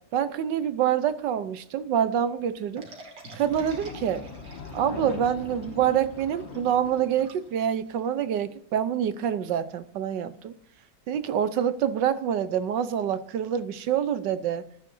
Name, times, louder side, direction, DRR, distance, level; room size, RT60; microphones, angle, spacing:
voice 1, 0.1-2.9 3.3-4.2 4.7-10.6 11.1-14.6, right 9 dB, 70° right, 1.4 m, -26 dB
sound 1, 2.8-8.1, right 2 dB, 90° right, 3.0 m, -49 dB
sound 2, 3.4-7.9, left 4 dB, 85° left, 2.3 m, -41 dB
17.5 x 13.0 x 2.7 m
omnidirectional pair, 2.0 m